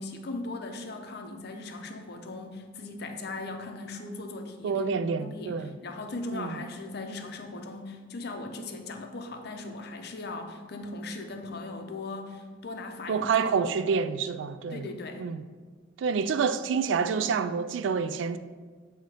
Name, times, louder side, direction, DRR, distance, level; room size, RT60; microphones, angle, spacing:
voice 1, 0.0-4.8 5.2-13.5 14.7-15.2, left 2 dB, 55° left, 0.6 m, -38 dB
voice 2, 4.6-5.8 6.3-6.6 13.1-14.9 15.2-15.4 16.0-18.4, right 5 dB, 70° right, 0.3 m, -28 dB
7.6 x 2.8 x 4.8 m
head